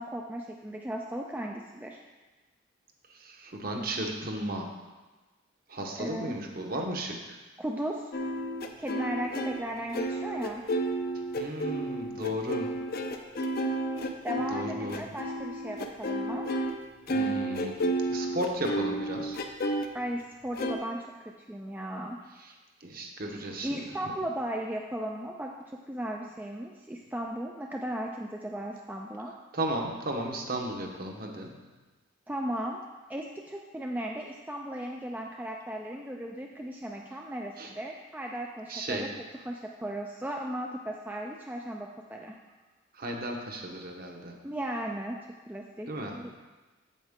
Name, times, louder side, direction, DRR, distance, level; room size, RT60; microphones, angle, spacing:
voice 1, 0.0-2.0 6.0-6.4 7.6-8.1 8.8-10.6 14.2-16.4 19.9-22.2 23.6-29.3 32.3-32.8 33.1-39.1 39.5-42.4 44.4-45.2 45.5-46.3, right 1 dB, 10° right, 0 dB, 0.4 m, -36 dB
voice 2, 3.1-4.8 5.7-7.4 11.4-12.8 14.5-15.1 17.1-19.4 22.8-23.8 29.5-31.5 37.6-37.7 38.7-39.1 43.0-44.3 45.9-46.2, right 1 dB, 45° right, 1 dB, 1.0 m, -35 dB
sound 1, 8.1-16.8 17.1-19.9 20.6-20.8, right 1 dB, 45° left, 0.6 m, -31 dB
8.4 x 7.2 x 3.7 m, 1.2 s
head